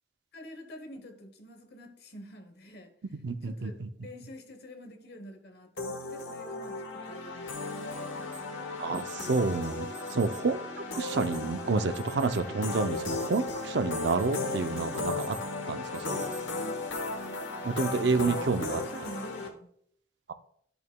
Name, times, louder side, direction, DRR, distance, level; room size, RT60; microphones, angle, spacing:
voice 1, 0.3-2.9 3.4-8.3 18.5-19.7, equal, 55° left, 1.1 m, -47 dB
voice 2, 3.2-3.9 8.8-15.4 15.7-16.4 17.6-18.8 20.3-20.4, right 4 dB, 65° right, 0.5 m, -29 dB
sound 1, 5.8-19.5, left 3 dB, 90° left, 1.1 m, -35 dB
Alarm, 8.3-8.4 8.9-9.4 9.9-10.4 10.9-11.4 11.9-12.4 12.8-13.6 13.9-14.5 14.8-15.5 15.9-16.4 16.9-17.0 17.8-18.2, right 4 dB, 10° left, 0.9 m, -48 dB
10.5 x 6.8 x 2.3 m
head